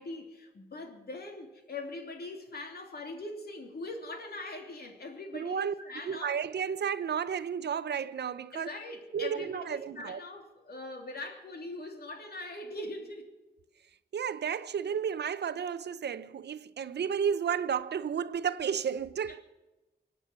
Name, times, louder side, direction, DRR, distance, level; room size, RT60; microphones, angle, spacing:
voice 1, 0.0-6.4 8.5-13.3 19.3-19.4, left 2 dB, 65° left, 2.9 m, -42 dB
voice 2, 5.3-5.7 6.1-8.7 9.1-10.2 14.1-19.4, right 7 dB, 80° right, 0.7 m, -32 dB
24.5 x 9.0 x 6.1 m
wide cardioid pair, 95°, 17 cm